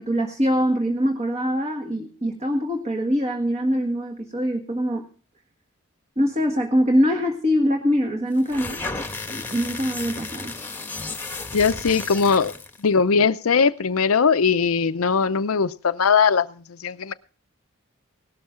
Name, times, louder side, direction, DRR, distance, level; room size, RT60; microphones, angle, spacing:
voice 1, 0.0-5.0 6.2-8.8 9.3-10.5, equal, 30° right, 3 dB, 1.7 m, -23 dB
sound 1, 8.4-12.8, left 3 dB, 10° left, 1.3 m, -33 dB
voice 2, 11.5-12.5 12.8-16.5 16.8-17.1, left 5 dB, 90° left, 11 dB, 0.6 m, -20 dB
18.0 x 12.5 x 3.7 m, 0.38 s
head